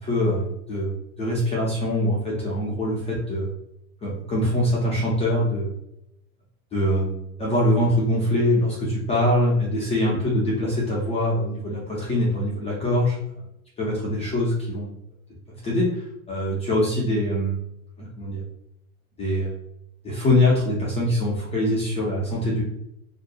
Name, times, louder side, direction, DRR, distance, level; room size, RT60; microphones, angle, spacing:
voice 1, 0.0-3.5 4.0-5.7 6.7-13.2 13.8-14.9 15.6-17.6 18.0-18.4 19.2-19.6 20.0-22.6, left 1 dB, 15° left, -5 dB, 0.3 m, -23 dB
2.7 x 2.1 x 2.3 m, 0.80 s
hypercardioid pair, 110°, 43 cm